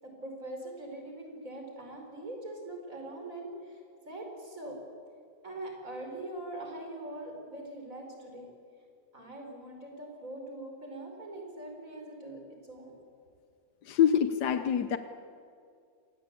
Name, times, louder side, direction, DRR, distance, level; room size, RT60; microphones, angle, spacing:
voice 1, 0.0-3.8 4.1-4.8 5.4-8.5 9.1-13.0, right 1 dB, 55° right, 2 dB, 5.5 m, -42 dB
voice 2, 13.9-15.0, left 9 dB, 85° left, 10 dB, 1.5 m, -25 dB
27.0 x 20.0 x 8.4 m, 2.3 s
omnidirectional pair, 1.7 m